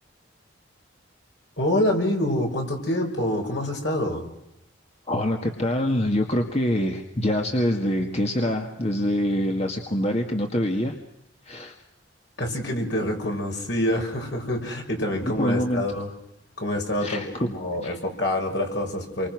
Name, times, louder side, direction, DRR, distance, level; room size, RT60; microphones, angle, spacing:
voice 1, 1.6-4.3 12.4-16.1 16.6-19.3, left 1 dB, 65° left, 2 dB, 6.2 m, -26 dB
voice 2, 5.1-11.0 11.5-11.8 15.2-15.8 17.0-17.3 17.8-18.0, left 1 dB, 35° left, 3 dB, 1.9 m, -25 dB
29.5 x 25.0 x 6.2 m, 0.83 s
head